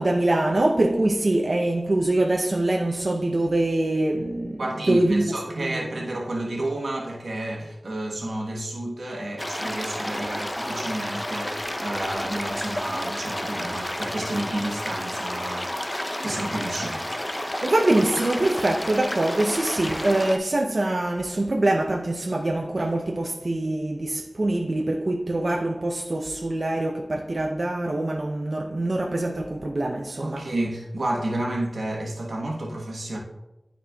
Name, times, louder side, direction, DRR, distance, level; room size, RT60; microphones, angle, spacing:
voice 1, 0.0-4.6 4.9-6.1 17.6-30.4, right 1 dB, 60° right, 0.6 m, -24 dB
voice 2, 4.6-15.9 16.2-17.0 30.2-33.2, right 1 dB, 90° right, 1.1 m, -31 dB
sound 1, 9.4-20.4, left 1 dB, 25° left, 0.5 m, -31 dB
11.5 x 4.2 x 2.3 m
wide cardioid pair, 45°, 0 cm